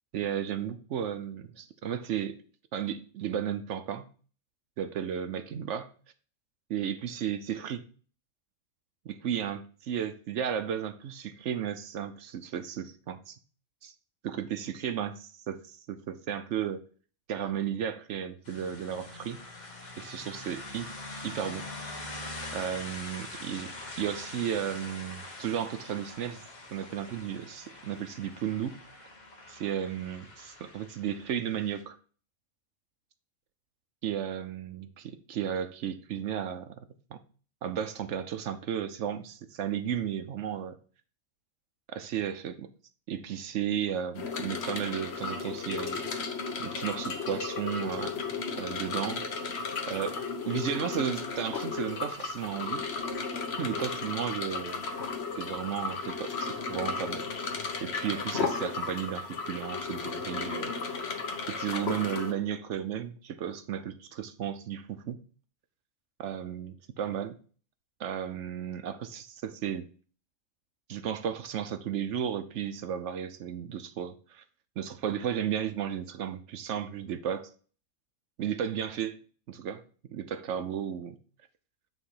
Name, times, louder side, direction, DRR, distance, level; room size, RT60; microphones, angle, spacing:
voice 1, 0.1-2.4 2.7-4.1 4.8-5.9 6.7-7.8 9.1-13.4 13.8-13.9 14.2-16.8 17.3-19.4 20.0-20.9 21.2-21.7 22.5-26.4 26.7-29.1 29.5-32.0 34.0-36.8 37.1-37.2 37.6-40.8 41.9-42.7 43.1-46.0 46.6-48.2 48.6-49.2 49.9-52.9 53.6-54.8 55.4-57.3 57.8-60.8 61.5-65.2 66.2-67.4 68.0-69.9 70.9-74.4 74.8-77.5 78.4-79.2 79.5-79.8 80.1-81.2, right 9 dB, 65° right, 0.9 m, -34 dB
sound 1, 18.4-31.8, left 2 dB, 35° left, 1.2 m, -44 dB
sound 2, 44.1-62.3, left 4 dB, 55° left, 1.1 m, -34 dB
9.4 x 3.3 x 5.6 m
omnidirectional pair, 1.4 m